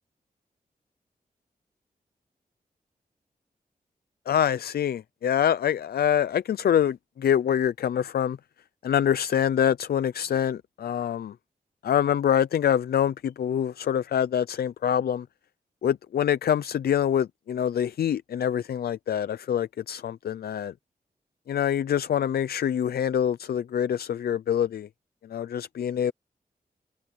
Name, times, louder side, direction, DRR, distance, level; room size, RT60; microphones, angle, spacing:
voice 1, 4.3-8.4 8.8-11.3 11.8-15.3 15.8-20.7 21.5-24.9 25.3-26.1, left 9 dB, 85° left, 0.5 m, -25 dB
open air
wide cardioid pair, 160°, 16 cm